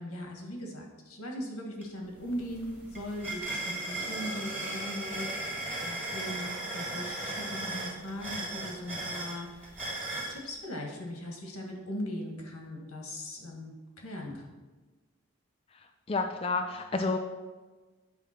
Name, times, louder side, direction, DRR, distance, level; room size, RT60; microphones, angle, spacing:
voice 1, 0.0-5.5 5.8-9.7 10.1-14.5, equal, 85° left, 1 dB, 1.7 m, -39 dB
sound 1, 1.8-1.9 2.2-10.4, right 2 dB, 5° right, 1.6 m, -36 dB
voice 2, 16.1-17.2, left 3 dB, 25° left, 5 dB, 0.3 m, -29 dB
9.1 x 3.5 x 5.9 m, 1.3 s
head